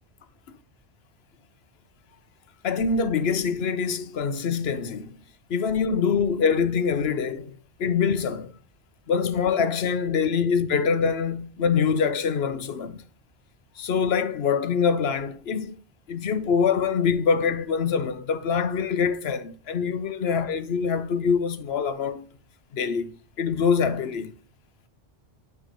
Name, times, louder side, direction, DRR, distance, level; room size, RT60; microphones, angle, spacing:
voice 1, 2.6-5.2 5.5-7.5 7.8-8.6 9.1-13.0 13.8-15.8 16.1-22.3 22.7-24.3, left 6 dB, 65° left, 1.0 m, -24 dB
10.0 x 3.5 x 5.1 m
omnidirectional pair, 1.2 m